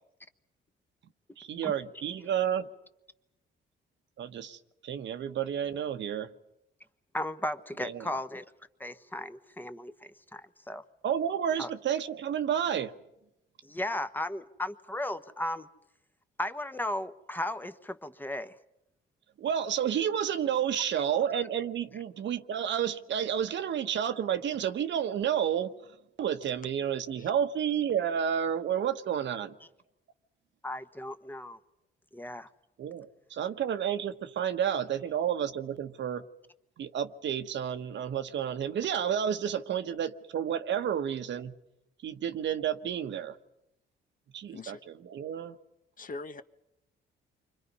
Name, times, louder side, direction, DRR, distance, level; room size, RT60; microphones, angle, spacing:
voice 1, 1.4-2.7 4.2-6.3 7.8-8.1 11.0-12.9 19.4-25.7 26.2-29.5 32.8-36.2 36.8-41.5 42.0-43.4 44.3-45.6, right 9 dB, 65° right, 9 dB, 1.3 m, -31 dB
voice 2, 7.1-8.4 8.8-10.4 10.7-10.8 11.6-11.7 13.6-15.7 16.4-18.5 30.6-31.6 32.1-32.5, left 1 dB, 10° left, 10 dB, 1.2 m, -35 dB
voice 3, 46.0-46.4, left 3 dB, 45° left, 10 dB, 1.2 m, -41 dB
29.0 x 24.5 x 5.5 m, 0.87 s
cardioid pair, 90°, 20 cm